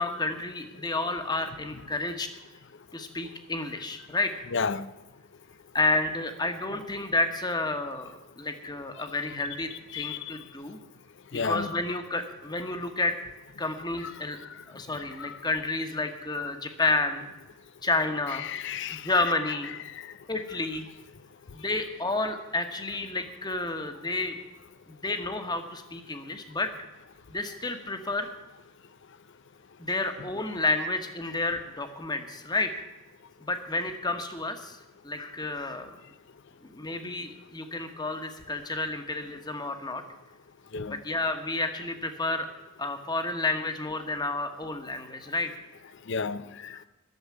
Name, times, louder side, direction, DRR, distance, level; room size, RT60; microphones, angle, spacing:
voice 1, 0.0-2.3 2.9-4.3 5.7-10.8 11.4-13.1 13.6-14.4 14.7-17.3 17.8-18.5 18.9-19.7 20.3-20.9 21.5-24.4 24.9-26.7 27.3-28.3 29.8-32.7 33.4-34.8 35.0-35.9 36.7-40.0 40.9-42.5 42.8-45.5, left 2 dB, 20° left, 1.1 m, -30 dB
voice 2, 4.5-4.9 9.9-10.2 11.3-11.7 14.0-14.1 15.2-15.4 18.4-19.1 20.0-20.1 40.7-41.0 46.1-46.7, left 5 dB, 55° left, 0.6 m, -32 dB
12.0 x 7.2 x 9.4 m
head